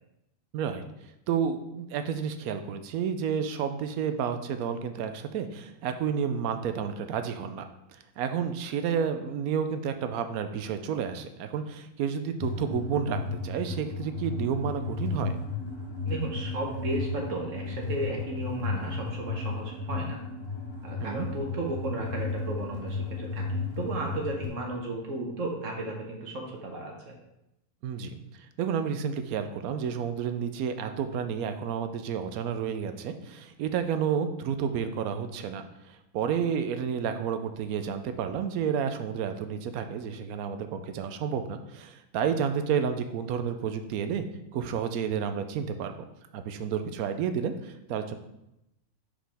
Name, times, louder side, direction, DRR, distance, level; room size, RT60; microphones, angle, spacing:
voice 1, 1.3-7.6 8.2-15.3 21.0-21.3 27.8-44.3 44.5-45.9 46.3-48.2, right 7 dB, 80° right, 9 dB, 1.1 m, -31 dB
sound 1, 12.4-24.5, left 3 dB, 25° left, 0.8 m, -34 dB
voice 2, 16.1-20.2 20.8-23.4 23.8-27.1, right 2 dB, 65° right, 0 dB, 1.3 m, -34 dB
5.8 x 5.0 x 3.4 m, 0.86 s
omnidirectional pair, 1.5 m